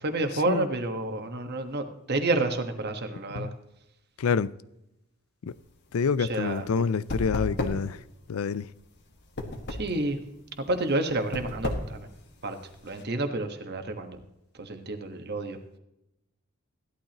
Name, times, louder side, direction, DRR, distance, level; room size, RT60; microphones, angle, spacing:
voice 1, 0.0-3.5 6.2-6.7 9.8-10.2 10.7-12.1 12.4-12.6 12.8-14.2 14.6-15.6, right 2 dB, 50° right, 1.3 m, -29 dB
voice 2, 4.2-4.5 5.4-5.6 5.9-8.0 8.3-8.7, left 5 dB, 80° left, 0.5 m, -27 dB
sound 1, 5.5-13.0, left 1 dB, 55° left, 1.7 m, -36 dB
16.0 x 12.0 x 3.0 m
head